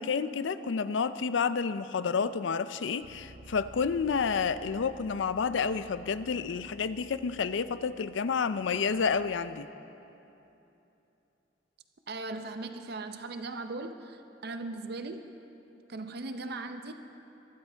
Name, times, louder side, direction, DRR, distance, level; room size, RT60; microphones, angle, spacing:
voice 1, 0.0-9.7, left 5 dB, 85° left, 13 dB, 0.5 m, -30 dB
Bass guitar, 3.0-9.3, right 1 dB, 75° right, 1.0 m, -54 dB
voice 2, 12.1-15.3 15.9-16.9, right 3 dB, 60° right, 7 dB, 0.6 m, -38 dB
23.0 x 12.5 x 3.4 m, 2.9 s
head